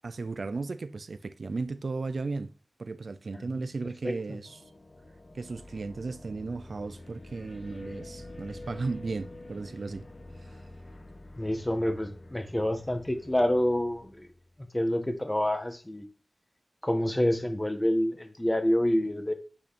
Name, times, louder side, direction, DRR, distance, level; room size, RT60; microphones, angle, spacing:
voice 1, 0.0-2.5 2.8-4.6 5.3-10.1, right 3 dB, 75° right, 0.6 m, -35 dB
voice 2, 4.0-4.4 11.4-14.3 14.7-16.0 16.8-19.3, left 1 dB, 20° left, 1.8 m, -27 dB
sound 1, 4.4-14.6, left 1 dB, 65° left, 3.7 m, -47 dB
9.0 x 5.6 x 4.4 m
cardioid pair, 50°, 0 cm